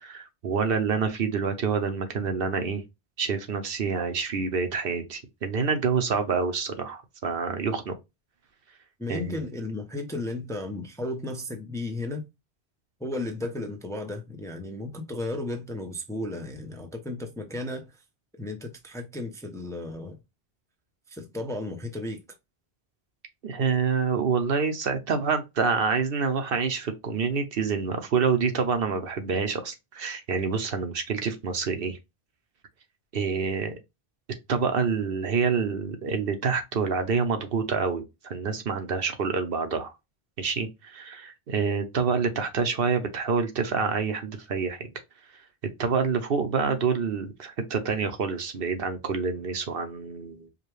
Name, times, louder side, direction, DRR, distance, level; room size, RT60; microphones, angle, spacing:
voice 1, 0.0-2.8 3.2-7.9 9.1-9.4 23.4-32.0 33.1-33.7 34.5-39.9 40.4-44.9 45.8-50.5, right 5 dB, 65° right, 0.9 m, -27 dB
voice 2, 9.0-12.2 13.0-17.9 18.4-20.2 21.1-22.2, left 2 dB, 5° left, 0.6 m, -34 dB
4.9 x 2.3 x 3.2 m
omnidirectional pair, 1.0 m